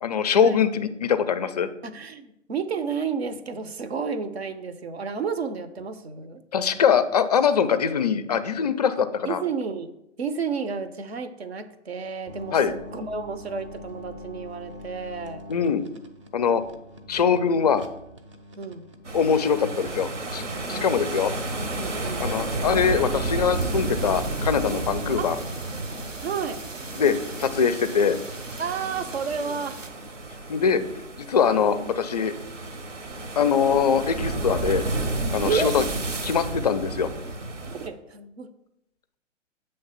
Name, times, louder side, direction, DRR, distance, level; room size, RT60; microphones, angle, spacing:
voice 1, 0.0-1.7 6.5-9.4 12.5-12.7 15.5-15.8 16.3-16.6 17.1-17.9 19.1-20.4 20.7-21.3 22.2-25.4 27.0-28.2 30.5-30.8 31.2-32.3 33.4-34.8 35.3-35.8 36.2-37.1, left 6 dB, 35° left, 12 dB, 0.4 m, -22 dB
voice 2, 1.8-6.4 9.2-9.9 10.2-15.4 18.6-18.9 20.7-20.9 21.7-22.3 25.2-25.4 26.2-26.6 28.6-29.8 31.7-31.9 35.4-35.7 37.8-38.5, right 5 dB, 55° right, 11 dB, 0.7 m, -31 dB
sound 1, 12.3-25.2, equal, 25° right, 0.5 m, -45 dB
sound 2, 19.0-37.9, right 2 dB, 75° right, 1.1 m, -32 dB
sound 3, 23.5-29.9, right 3 dB, 90° right, 0.8 m, -42 dB
7.7 x 3.3 x 5.6 m, 0.85 s
figure-of-eight pair, 120°, 37 cm